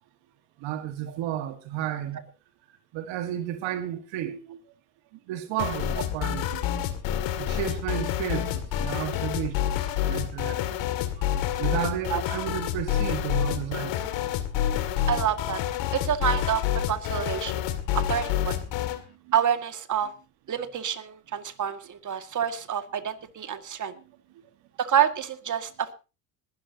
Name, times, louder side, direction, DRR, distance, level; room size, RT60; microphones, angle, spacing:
voice 1, 0.6-2.3 2.9-4.6 5.1-6.7 7.4-14.2 18.7-19.3, right 11 dB, 70° right, 1.8 m, -33 dB
sound 1, 5.6-19.0, left 11 dB, 65° left, 2.4 m, -28 dB
voice 2, 15.1-15.6 15.9-17.7 17.9-18.6 19.3-20.1 20.5-23.9 24.8-25.9, right 9 dB, 40° right, 2.1 m, -27 dB
20.5 x 12.5 x 2.9 m
supercardioid pair, 80°, 47 cm